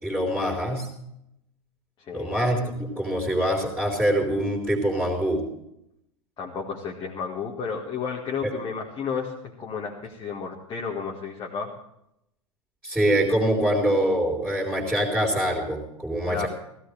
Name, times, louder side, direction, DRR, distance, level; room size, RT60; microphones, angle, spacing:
voice 1, 0.0-0.9 2.1-5.4 12.8-16.5, right 1 dB, 5° right, -4 dB, 3.6 m, -24 dB
voice 2, 6.4-11.7 16.2-16.5, left 6 dB, 25° left, -1 dB, 1.9 m, -32 dB
16.5 x 16.0 x 3.4 m, 0.78 s
figure-of-eight pair, 95°, 19 cm